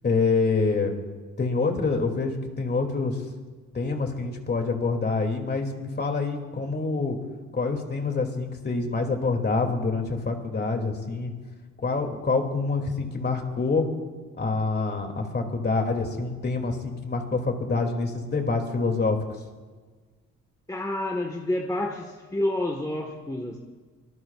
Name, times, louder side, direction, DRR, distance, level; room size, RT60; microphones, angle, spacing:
voice 1, 0.0-1.0 1.4-3.2 3.7-7.2 7.5-11.3 11.8-13.9 14.4-19.2, left 4 dB, 35° left, 4 dB, 2.6 m, -26 dB
voice 2, 20.7-23.6, left 1 dB, 10° left, 2 dB, 1.5 m, -29 dB
25.0 x 19.0 x 2.5 m, 1.4 s
cardioid pair, 90°, 30 cm